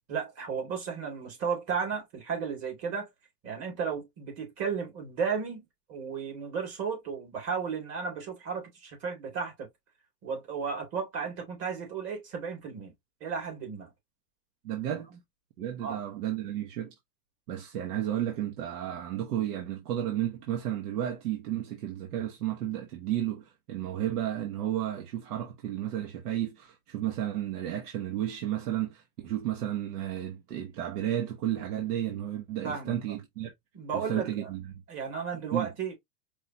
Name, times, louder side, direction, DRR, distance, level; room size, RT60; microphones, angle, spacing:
voice 1, 0.1-3.1 3.4-9.7 10.2-12.9 13.2-13.9 15.8-16.0 32.6-33.1 33.7-34.5 34.9-36.0, right 6 dB, 30° right, 2.3 m, -34 dB
voice 2, 14.6-15.1 15.6-16.9 17.5-33.5 33.9-34.8 35.5-35.7, right 11 dB, 85° right, 1.2 m, -32 dB
4.9 x 2.8 x 2.6 m
supercardioid pair, 150°, 46 cm